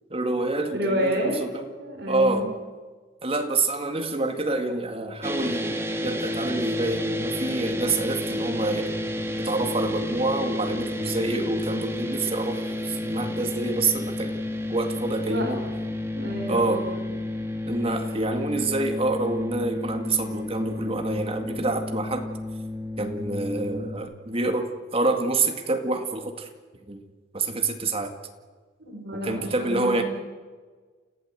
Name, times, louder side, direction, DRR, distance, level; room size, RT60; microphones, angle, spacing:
voice 1, 0.1-1.7 2.1-2.5 3.2-9.0 9.4-14.3 14.7-15.7 16.5-16.8 17.7-22.3 23.0-26.5 26.9-27.0 27.3-28.1 29.1-30.0, right 2 dB, 30° right, 5 dB, 2.1 m, -27 dB
voice 2, 0.7-1.3 1.8-2.5 15.2-15.5 16.1-17.1 28.8-30.0, equal, 60° right, 0 dB, 5.1 m, -29 dB
sound 1, 5.2-24.0, left 1 dB, 15° right, 1.8 m, -31 dB
29.0 x 16.0 x 7.8 m, 1.4 s
head